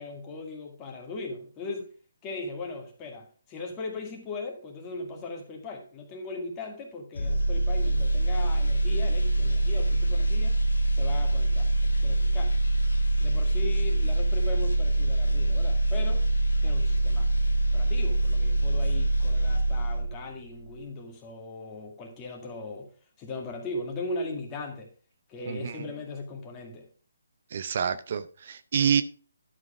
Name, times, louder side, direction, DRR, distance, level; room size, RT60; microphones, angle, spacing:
voice 1, 0.0-1.9 2.2-10.6 10.9-12.5 13.2-16.3 16.6-17.3 17.7-22.9 23.2-24.9 25.3-26.9, left 3 dB, 20° left, 2.0 m, -38 dB
sound 1, 7.1-20.3 20.6-20.8, right 1 dB, 90° left, 1.4 m, -24 dB
voice 2, 25.5-25.8 27.5-29.0, right 7 dB, 50° right, 0.6 m, -27 dB
11.0 x 4.9 x 4.9 m
hypercardioid pair, 155°, 0 cm